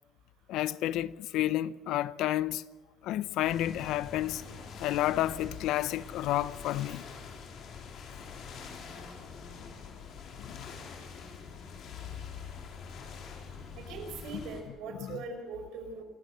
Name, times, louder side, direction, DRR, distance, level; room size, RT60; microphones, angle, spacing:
voice 1, 0.5-2.6 3.0-4.4 4.8-7.0 10.4-10.8 15.0-15.2, left 13 dB, 65° left, 0.7 m, -31 dB
sound 1, 3.4-14.6, left 5 dB, 50° left, 4.0 m, -45 dB
voice 2, 13.8-16.0, right 4 dB, 70° right, 5.7 m, -41 dB
28.0 x 15.5 x 7.9 m
cardioid pair, 180°, 0 cm